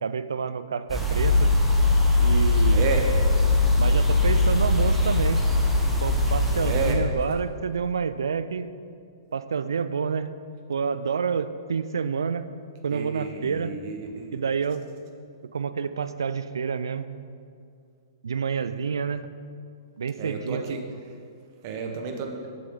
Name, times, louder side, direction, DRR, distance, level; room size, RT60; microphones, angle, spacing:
voice 1, 0.0-1.5 2.2-2.9 3.8-5.4 6.0-8.7 9.3-10.3 10.7-12.5 12.8-13.7 14.3-14.8 15.5-17.1 18.2-19.3 20.0-20.8, right 6 dB, 70° right, 12 dB, 0.3 m, -28 dB
sound 1, 0.9-6.9, left 2 dB, ahead, 0.9 m, -21 dB
voice 2, 2.7-3.1 6.6-7.0 12.9-14.4 20.2-20.8 21.6-22.4, right 5 dB, 40° right, 3 dB, 0.9 m, -31 dB
6.8 x 6.8 x 3.6 m, 2.4 s
figure-of-eight pair, 115°, 2 cm